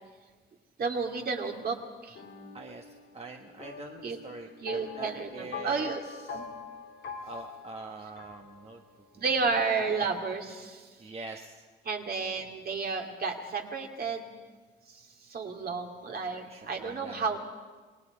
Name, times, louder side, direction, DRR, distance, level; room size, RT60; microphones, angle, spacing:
voice 1, 0.8-1.8 2.0-2.2 4.0-4.2 4.6-6.0 6.3-6.5 9.2-10.9 11.8-14.3 14.9-17.4, right 4 dB, 50° right, 2 dB, 2.5 m, -32 dB
sound 1, 2.1-9.1, left 6 dB, 70° left, 2.8 m, -44 dB
voice 2, 2.5-6.4 7.2-8.8 9.1-9.5 11.0-11.6 16.3-17.4, right 3 dB, 30° right, 3 dB, 1.2 m, -45 dB
27.5 x 19.0 x 5.0 m, 1.4 s
cardioid pair, 90°, 20 cm